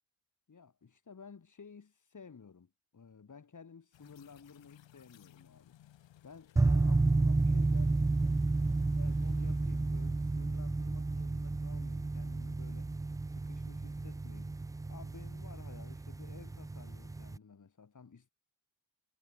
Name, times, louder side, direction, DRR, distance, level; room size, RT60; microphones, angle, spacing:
voice 1, 0.5-5.8 6.2-8.4 9.0-12.9 13.3-14.6 14.9-18.3, left 5 dB, 35° left, 5.3 m, -54 dB
sound 1, 3.9-10.6, left 12 dB, 60° left, 3.7 m, -62 dB
sound 2, 6.6-17.4, right 3 dB, 10° right, 0.4 m, -31 dB
hypercardioid pair, 50°, 49 cm